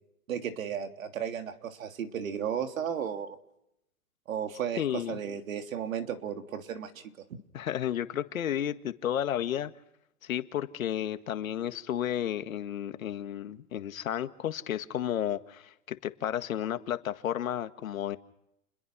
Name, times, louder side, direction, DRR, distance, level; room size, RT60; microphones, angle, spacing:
voice 1, 0.3-3.4 4.3-7.1, right 8 dB, 70° right, 6 dB, 3.2 m, -34 dB
voice 2, 4.8-5.2 7.5-9.7 10.2-18.2, left 10 dB, 70° left, 10 dB, 1.9 m, -32 dB
29.5 x 22.0 x 6.2 m, 0.82 s
hypercardioid pair, 160°, 43 cm